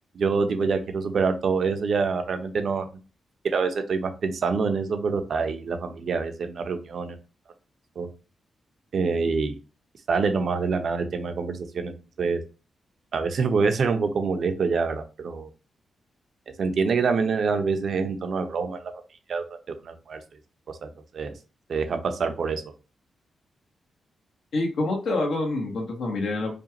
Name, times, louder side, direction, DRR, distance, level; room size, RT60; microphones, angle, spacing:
voice 1, 0.1-2.9 3.4-7.2 8.0-8.1 8.9-9.6 10.1-12.4 13.1-15.5 16.6-18.9 19.3-20.2 20.8-21.3 21.7-22.6, right 5 dB, 55° right, 7 dB, 0.7 m, -26 dB
voice 2, 24.5-26.5, left 2 dB, 70° left, 0 dB, 1.4 m, -26 dB
5.1 x 2.4 x 2.9 m, 0.33 s
wide cardioid pair, 145°, 0 cm